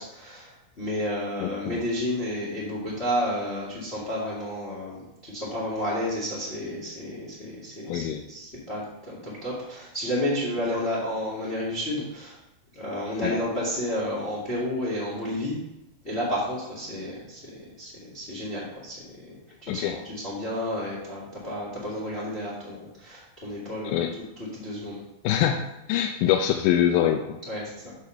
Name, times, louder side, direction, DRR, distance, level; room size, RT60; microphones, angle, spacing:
voice 1, 0.0-12.3 12.7-15.6 16.0-24.0 24.5-25.0 27.5-27.9, left 1 dB, 25° left, -5 dB, 1.5 m, -31 dB
voice 2, 1.4-1.8 7.9-8.2 13.2-13.3 19.7-20.0 23.8-24.1 25.2-27.4, left 10 dB, 80° left, 3 dB, 2.1 m, -24 dB
6.5 x 5.0 x 6.6 m, 0.88 s
omnidirectional pair, 4.7 m